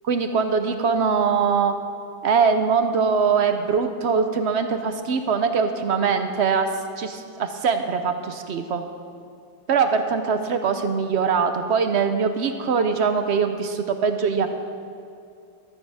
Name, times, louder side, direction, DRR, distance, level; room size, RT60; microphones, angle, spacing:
voice 1, 0.0-1.7 2.2-6.7 7.0-8.8 9.7-14.5, right 5 dB, 65° right, 7 dB, 0.6 m, -22 dB
13.5 x 8.6 x 5.4 m, 2.4 s
omnidirectional pair, 1.9 m